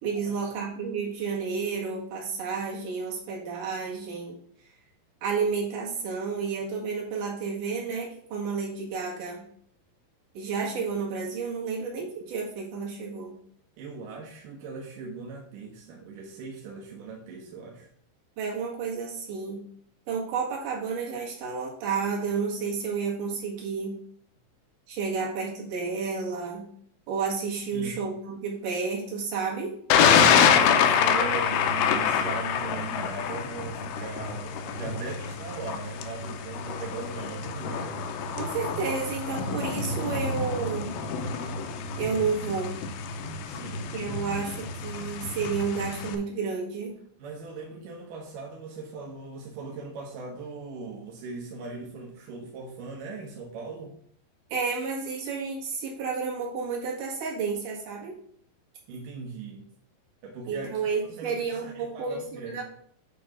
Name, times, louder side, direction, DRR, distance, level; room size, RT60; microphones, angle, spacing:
voice 1, 0.0-4.4 5.2-9.4 10.3-13.4 18.4-19.6 20.1-24.0 24.9-26.7 27.1-29.7 38.4-40.9 42.0-42.7 43.9-46.9 54.5-58.1 60.5-62.6, right 5 dB, 55° right, -4 dB, 2.9 m, -31 dB
voice 2, 13.8-17.9 27.7-28.0 30.1-38.1 43.4-43.9 47.2-53.9 58.9-59.7 60.2-62.6, right 4 dB, 75° right, -1 dB, 2.0 m, -39 dB
Thunder, 29.9-46.2, left 7 dB, 85° left, 2.8 m, -26 dB
8.9 x 3.0 x 5.9 m, 0.65 s
omnidirectional pair, 4.9 m